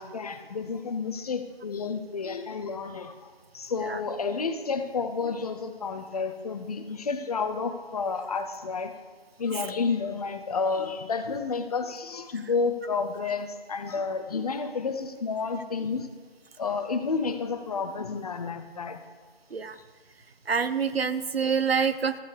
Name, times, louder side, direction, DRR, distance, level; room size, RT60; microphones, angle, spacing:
voice 1, 0.0-8.9 9.4-16.1 16.6-19.0, left 4 dB, 40° left, 9 dB, 0.8 m, -30 dB
voice 2, 20.5-22.2, right 6 dB, 85° right, 13 dB, 0.8 m, -26 dB
14.0 x 9.3 x 3.4 m, 1.5 s
figure-of-eight pair, 150°, 30 cm